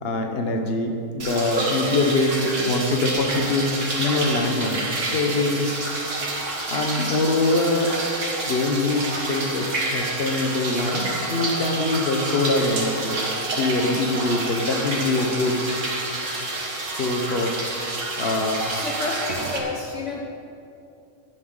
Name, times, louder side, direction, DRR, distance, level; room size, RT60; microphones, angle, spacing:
voice 1, 0.0-3.7 4.0-4.8 5.1-5.8 6.7-7.9 8.5-13.2 13.6-15.6 16.8-17.7 18.2-18.6, left 2 dB, 50° left, 3 dB, 1.4 m, -23 dB
sound 1, 1.2-19.6, right 2 dB, 65° right, 2.0 m, -28 dB
voice 2, 18.7-20.2, left 3 dB, 65° left, 0 dB, 1.2 m, -30 dB
16.5 x 11.0 x 4.0 m, 2.6 s
omnidirectional pair, 1.4 m